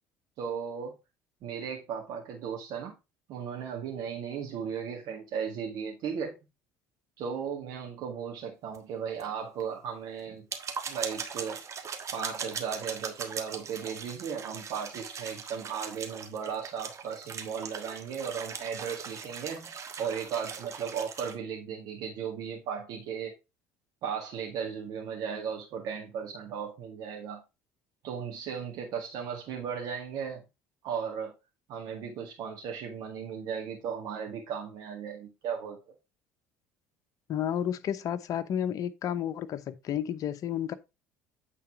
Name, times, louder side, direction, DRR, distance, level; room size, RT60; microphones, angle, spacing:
voice 1, 0.4-0.9 1.4-3.0 3.3-6.4 7.2-10.5 10.9-11.6 12.1-19.7 20.0-23.4 24.0-27.4 28.0-30.4 30.8-31.3 31.7-35.9, right 7 dB, 60° right, 1.9 m, -36 dB
sound 1, 8.7-8.8 9.2-9.3 9.6-9.7 10.3-21.3, right 6 dB, 40° right, 1.5 m, -40 dB
voice 2, 37.3-40.7, left 10 dB, 50° left, 0.8 m, -31 dB
8.5 x 4.1 x 4.7 m
hypercardioid pair, 60°, 8 cm